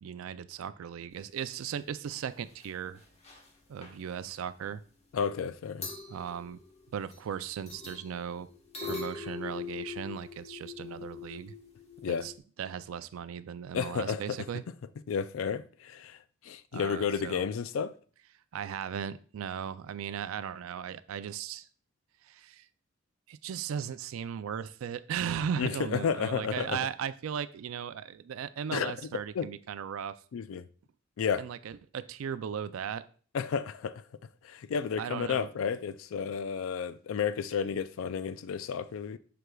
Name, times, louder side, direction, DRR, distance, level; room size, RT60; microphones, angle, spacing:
voice 1, 0.0-3.0 3.7-4.8 6.1-6.6 6.9-8.5 8.8-11.5 12.1-12.3 12.6-14.6 16.7-17.5 18.5-21.7 22.2-22.7 23.3-30.2 31.4-33.1 35.0-35.5, right 8 dB, 80° right, 0.4 m, -37 dB
sound 1, 1.9-2.1 2.4-2.7 2.9-3.5 3.8-4.0 5.5-5.6 5.8-7.3 7.7-12.4, left 5 dB, 30° left, 1.2 m, -42 dB
voice 2, 5.1-5.9 12.0-12.3 13.7-14.4 15.1-16.2 16.4-17.9 25.6-26.8 28.7-28.9 29.3-29.5 30.3-30.6 31.2-31.4 33.3-34.0 34.4-39.2, left 6 dB, 75° left, 0.4 m, -32 dB
7.9 x 5.9 x 2.3 m
head